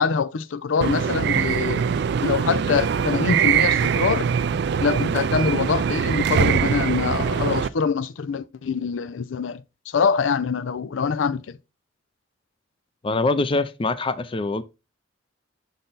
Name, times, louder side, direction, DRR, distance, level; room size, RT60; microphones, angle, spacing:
voice 1, 0.0-4.3 4.8-11.6, left 5 dB, 90° left, 0.5 m, -24 dB
sound 1, 0.8-7.7, right 7 dB, 60° right, 0.4 m, -22 dB
voice 2, 13.0-14.6, left 3 dB, 30° left, 0.5 m, -24 dB
6.5 x 4.0 x 4.0 m
head